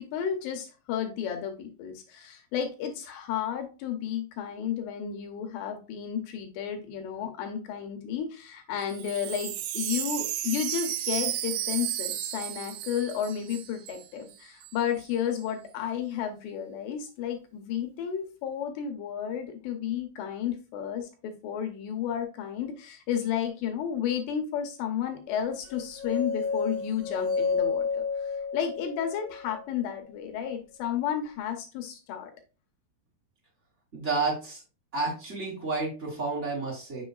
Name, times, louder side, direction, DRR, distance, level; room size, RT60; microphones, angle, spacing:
voice 1, 0.0-32.3, left 9 dB, 75° left, 5 dB, 2.8 m, -32 dB
Wind chime, 8.8-14.1 14.3-14.4 14.6-15.1, right 13 dB, 85° right, 2.9 m, -33 dB
sound 1, 25.7-29.8, left 4 dB, 55° left, 1.5 m, -30 dB
voice 2, 33.9-34.6 34.9-37.0, right 3 dB, 20° right, -3 dB, 2.4 m, -30 dB
8.0 x 6.2 x 2.4 m, 0.33 s
omnidirectional pair, 5.4 m